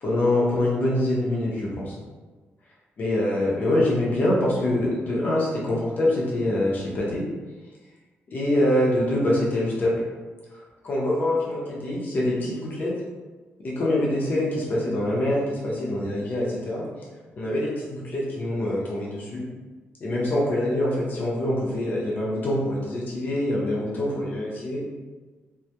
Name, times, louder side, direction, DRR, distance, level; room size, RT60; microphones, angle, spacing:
voice 1, 0.0-1.9 3.0-7.2 8.3-10.0 10.8-12.9 13.6-16.8 17.4-19.4 20.0-24.8, left 1 dB, 45° left, -4 dB, 0.6 m, -24 dB
2.2 x 2.0 x 2.8 m, 1.3 s
wide cardioid pair, 145°, 4 cm